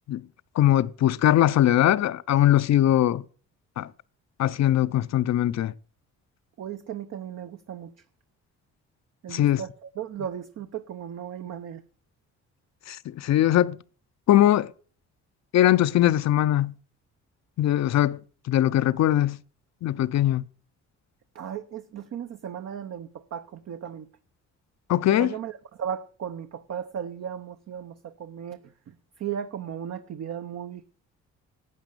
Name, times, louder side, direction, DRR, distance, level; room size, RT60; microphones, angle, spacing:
voice 1, 0.6-3.2 3.8-3.9 4.4-5.7 9.3-9.6 12.9-13.8 14.3-14.7 15.5-16.7 17.6-18.2 18.5-19.4 19.8-20.4 24.9-25.3, left 12 dB, 65° left, 0.6 m, -21 dB
voice 2, 6.6-7.9 9.2-11.8 21.3-24.1 25.1-28.6 29.2-30.8, right 9 dB, 60° right, 0.9 m, -36 dB
12.0 x 8.4 x 6.7 m
cardioid pair, 90°, 30 cm